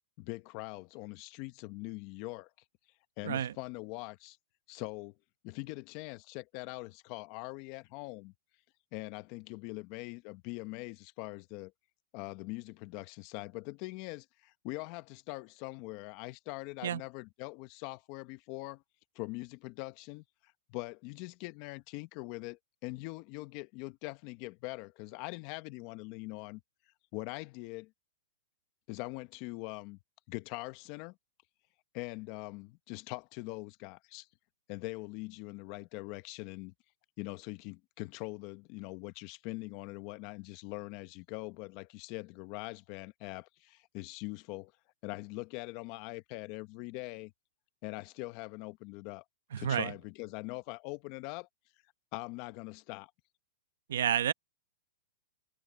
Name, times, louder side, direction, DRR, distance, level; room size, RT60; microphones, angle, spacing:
voice 1, 0.2-2.5 3.2-4.4 4.7-5.2 5.4-8.3 8.9-11.7 12.1-18.8 19.1-26.6 27.1-27.9 28.9-30.0 30.3-31.2 31.9-34.3 34.7-36.7 37.2-44.7 45.0-47.3 47.8-49.2 49.6-51.5 52.1-53.1, left 23 dB, 40° left, 1.2 m, -42 dB
voice 2, 49.5-49.9 53.9-54.3, right 9 dB, 75° right, 1.0 m, -30 dB
hypercardioid pair, 150°, 0 cm